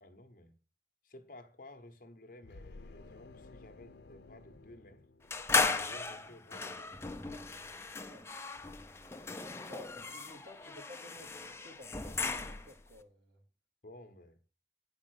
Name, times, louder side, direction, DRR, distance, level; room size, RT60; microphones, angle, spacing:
voice 1, 0.0-0.6 1.0-5.0 5.7-7.5 13.8-14.4, left 1 dB, 50° left, 1.1 m, -54 dB
sound 1, 2.4-5.9, left 3 dB, 80° left, 0.7 m, -54 dB
sound 2, 5.3-12.8, left 3 dB, 15° left, 0.5 m, -36 dB
voice 2, 9.6-13.4, left 1 dB, 80° right, 2.9 m, -54 dB
8.8 x 5.5 x 6.5 m
head